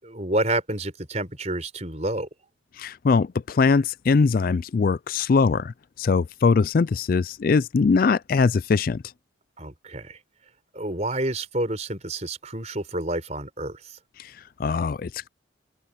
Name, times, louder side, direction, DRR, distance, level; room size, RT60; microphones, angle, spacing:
voice 1, 0.0-2.3 9.6-10.2 10.7-14.0, right 2 dB, 35° right, 4.7 m, -29 dB
voice 2, 2.8-5.7 6.0-9.0 14.6-15.3, left 4 dB, 45° left, 0.3 m, -21 dB
head